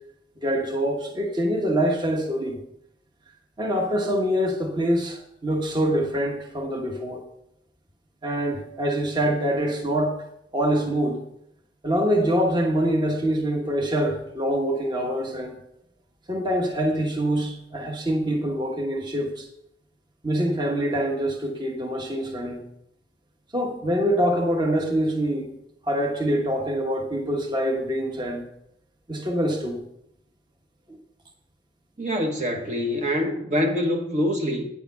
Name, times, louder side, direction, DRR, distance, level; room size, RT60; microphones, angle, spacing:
voice 1, 0.4-2.6 3.6-7.2 8.2-10.2 10.5-11.2 11.8-15.6 16.3-19.5 20.2-22.6 23.5-25.5 25.8-28.4 29.1-29.8, equal, 25° right, 1.2 m, -25 dB
voice 2, 32.0-34.7, equal, 45° right, 1.3 m, -25 dB
9.5 x 6.9 x 5.5 m
head